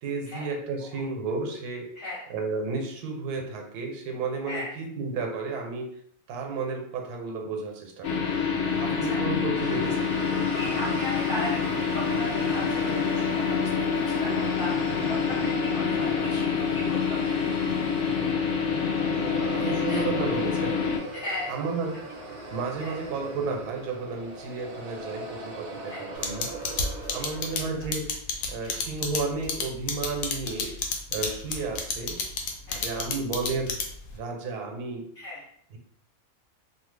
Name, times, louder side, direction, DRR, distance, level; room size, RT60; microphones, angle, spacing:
voice 1, 0.0-1.9 2.3-5.9 6.3-10.5 19.5-20.9 21.5-22.0 22.5-26.6 27.1-28.1 28.5-30.8 31.1-32.2 32.7-33.7 34.1-35.1, right 4 dB, 90° right, 3 dB, 1.2 m, -32 dB
sound 1, 8.0-21.0, left 6 dB, 70° left, 0.5 m, -27 dB
voice 2, 8.8-9.2 10.5-17.5 19.5-20.0 21.1-21.5 22.8-22.9 25.8-26.1 27.1-27.2 28.6-28.8 30.6-30.8 32.7-33.1 35.2-35.5, left 2 dB, 40° left, -7 dB, 1.0 m, -37 dB
sound 2, 9.6-27.8, right 3 dB, 55° right, 0.7 m, -39 dB
sound 3, 26.2-34.1, left 5 dB, 90° left, 1.1 m, -29 dB
2.7 x 2.1 x 3.2 m, 0.66 s
omnidirectional pair, 1.6 m